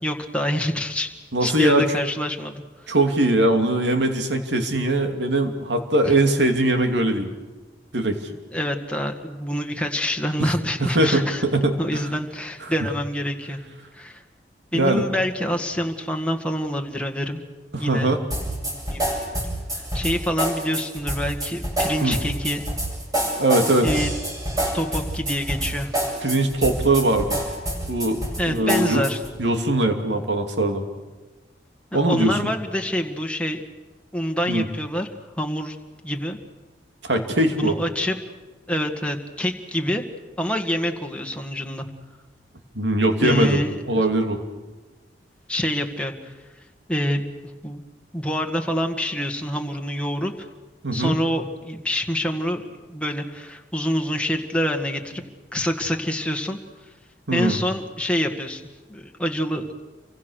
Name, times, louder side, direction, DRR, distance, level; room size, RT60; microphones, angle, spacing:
voice 1, 0.0-1.1 1.4-2.6 6.1-6.2 8.5-11.4 11.8-13.6 13.9-14.2 14.7-17.4 17.8-18.1 18.7-19.1 19.9-22.6 23.8-24.1 24.7-26.0 28.4-29.2 31.9-33.6 34.1-35.1 35.4-35.8 36.0-36.4 37.5-38.2 38.7-40.0 40.4-41.9 43.2-44.0 45.5-46.3 46.9-47.2 47.6-47.8 48.1-50.5 50.9-52.6 52.9-55.2 55.5-56.6 57.3-58.6 58.9-59.7, equal, 5° left, 3 dB, 2.0 m, -26 dB
voice 2, 1.3-1.9 2.9-7.3 7.9-8.3 10.4-10.5 10.8-12.1 12.6-12.7 14.7-15.0 17.7-18.2 22.0-22.2 23.4-23.9 26.2-27.4 27.9-29.1 29.4-30.8 31.9-32.4 34.5-34.7 37.0-37.8 42.7-44.4 50.8-51.2 57.3-57.6, right 1 dB, 85° right, 5 dB, 2.8 m, -21 dB
sound 1, 18.3-29.3, right 1 dB, 20° right, 8.0 m, -27 dB
29.5 x 25.0 x 6.6 m, 1.2 s
head